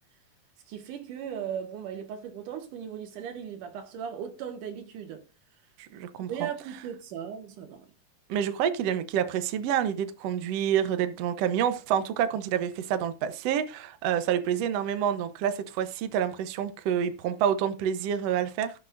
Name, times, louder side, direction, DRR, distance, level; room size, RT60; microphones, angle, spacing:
voice 1, 0.7-5.2 6.3-7.9, right 8 dB, 65° right, 2.9 m, -37 dB
voice 2, 5.8-6.5 8.3-18.7, right 9 dB, 90° right, 1.4 m, -28 dB
17.5 x 7.3 x 2.6 m
omnidirectional pair, 4.3 m